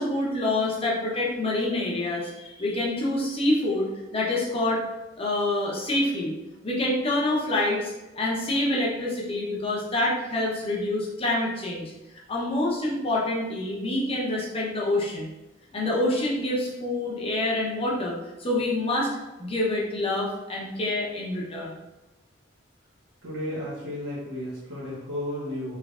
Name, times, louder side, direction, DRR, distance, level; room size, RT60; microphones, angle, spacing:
voice 1, 0.0-4.8 5.2-6.3 6.6-11.9 12.3-15.3 15.7-19.1 19.4-21.8, left 1 dB, 30° left, -3 dB, 0.8 m, -27 dB
voice 2, 23.2-25.8, left 1 dB, 70° right, -8 dB, 0.9 m, -33 dB
3.4 x 3.1 x 2.4 m, 1.0 s
head